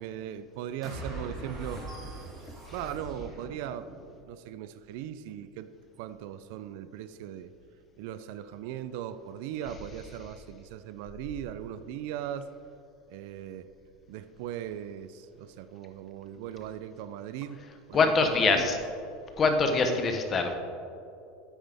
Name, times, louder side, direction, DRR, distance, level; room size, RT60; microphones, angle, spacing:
voice 1, 0.0-1.8 2.3-2.5 2.7-3.9 4.3-5.7 6.0-7.5 8.0-12.5 13.1-13.7 14.1-18.8 19.8-20.2, right 10 dB, 65° right, 13 dB, 0.4 m, -39 dB
sound 1, 0.8-4.2, right 2 dB, 30° right, 2.3 m, -41 dB
voice 2, 17.9-18.8 19.4-20.5, left 4 dB, 25° left, 5 dB, 0.9 m, -24 dB
9.3 x 8.8 x 3.5 m, 2.6 s
supercardioid pair, 135°, 0 cm